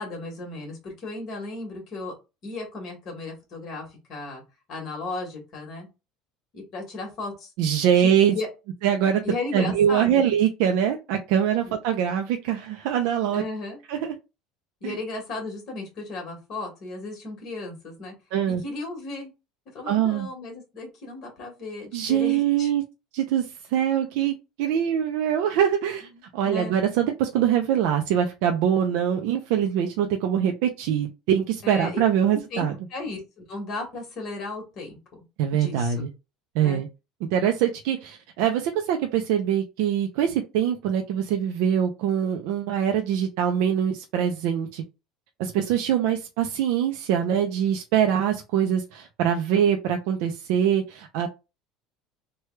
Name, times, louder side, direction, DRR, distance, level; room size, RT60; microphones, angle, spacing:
voice 1, 0.0-2.1 2.4-4.4 4.7-5.9 6.5-7.5 7.9-8.5 9.2-10.2 11.6-11.7 13.3-13.8 14.8-18.1 18.6-19.3 19.7-22.7 26.4-26.8 31.6-32.0 32.3-33.2 33.5-35.0 35.5-36.0 36.6-36.8, left 2 dB, 45° left, 1.4 m, -35 dB
voice 2, 7.6-8.3 8.8-9.2 9.5-13.4 13.9-14.1 14.8-15.0 18.3-18.6 19.9-20.3 21.9-22.8 23.1-32.7 35.4-36.1 36.5-36.9 37.3-44.8 45.4-51.3, right 9 dB, 70° right, 0.4 m, -23 dB
3.2 x 2.2 x 3.1 m
cardioid pair, 155°, 0 cm